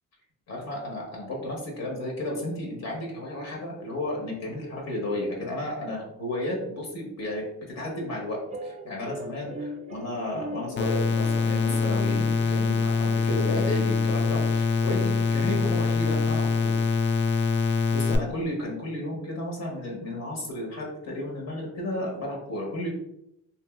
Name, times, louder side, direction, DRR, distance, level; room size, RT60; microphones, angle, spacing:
voice 1, 0.5-7.5 7.7-16.7 17.9-22.9, left 1 dB, 60° left, -1 dB, 1.0 m, -33 dB
sound 1, 8.5-15.0, right 1 dB, 25° right, 0.4 m, -40 dB
sound 2, 10.8-18.2, left 5 dB, 40° left, 0.4 m, -24 dB
2.9 x 2.6 x 2.3 m, 0.81 s
cardioid pair, 90°, 30 cm